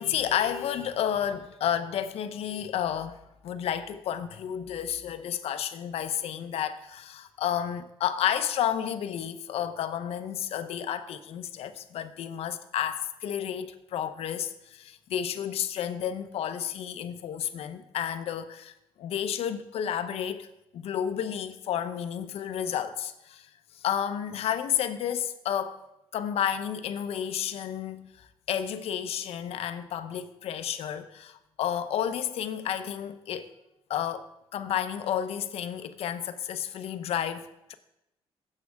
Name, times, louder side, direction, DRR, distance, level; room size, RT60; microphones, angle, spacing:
voice 1, 0.0-20.5 20.7-23.5 23.7-25.8 26.1-33.5 33.9-37.7, left 9 dB, 75° left, 0.8 m, -31 dB
16.0 x 7.6 x 3.6 m
cardioid pair, 140°, 10 cm